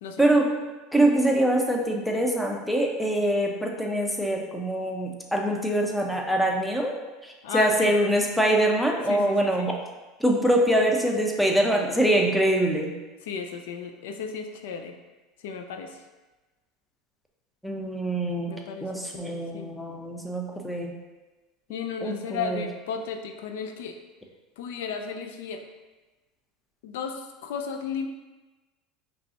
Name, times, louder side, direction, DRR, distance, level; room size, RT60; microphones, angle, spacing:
voice 1, 0.9-6.9 7.2-9.7 10.2-12.9 17.6-20.9 22.0-22.6, right 1 dB, ahead, 1 dB, 0.7 m, -24 dB
voice 2, 7.4-7.9 9.1-9.7 13.3-15.0 15.4-16.0 18.5-19.7 21.7-24.0 24.6-25.7 26.8-28.1, left 6 dB, 80° left, 5 dB, 0.4 m, -34 dB
5.1 x 3.2 x 2.9 m, 1.2 s
supercardioid pair, 105°, 0 cm